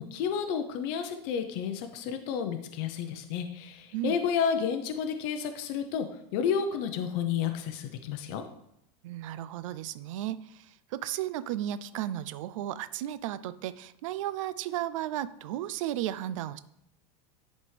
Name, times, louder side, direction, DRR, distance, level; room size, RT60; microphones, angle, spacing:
voice 1, 0.0-8.4, left 7 dB, 45° left, 6 dB, 0.6 m, -31 dB
voice 2, 9.0-16.6, right 12 dB, 75° right, 15 dB, 0.4 m, -34 dB
11.0 x 4.2 x 3.2 m, 0.81 s
supercardioid pair, 165°, 17 cm